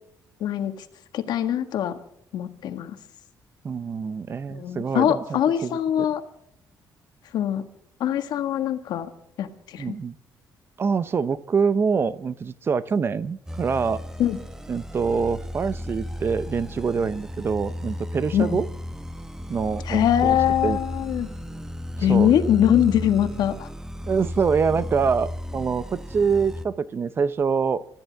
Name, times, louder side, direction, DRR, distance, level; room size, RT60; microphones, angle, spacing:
voice 1, 0.4-0.7 1.1-2.0 2.3-3.0 4.5-6.2 7.3-7.6 8.0-9.1 9.4-9.9 14.2-14.4 18.3-18.6 19.9-21.3 22.0-23.7, left 10 dB, 75° left, 8 dB, 1.7 m, -22 dB
voice 2, 3.6-5.8 9.8-10.2 10.8-14.0 14.7-18.7 19.5-20.4 20.6-20.8 22.0-22.3 24.1-27.9, right 5 dB, 35° right, 15 dB, 0.7 m, -25 dB
sound 1, 13.5-26.6, left 1 dB, 5° right, 1.0 m, -34 dB
24.5 x 13.5 x 3.6 m, 0.73 s
cardioid pair, 150°, 7 cm